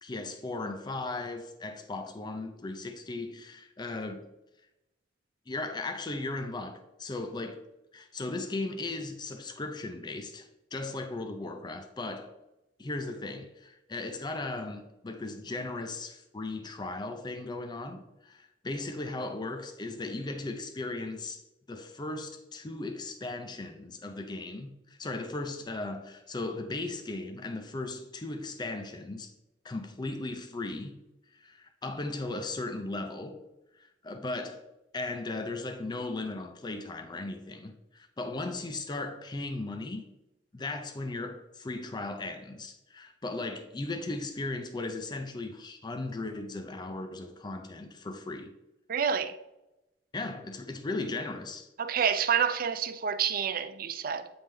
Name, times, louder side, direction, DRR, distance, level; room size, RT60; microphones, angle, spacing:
voice 1, 0.0-4.3 5.5-7.7 7.9-12.3 12.8-21.4 21.7-29.3 29.6-31.0 31.3-33.4 33.8-34.6 34.9-40.1 40.5-48.5 50.1-51.7, left 2 dB, 25° left, 0.5 m, -37 dB
voice 2, 48.9-49.4 51.8-54.3, right 7 dB, 55° right, 0.5 m, -28 dB
8.7 x 3.5 x 3.3 m
head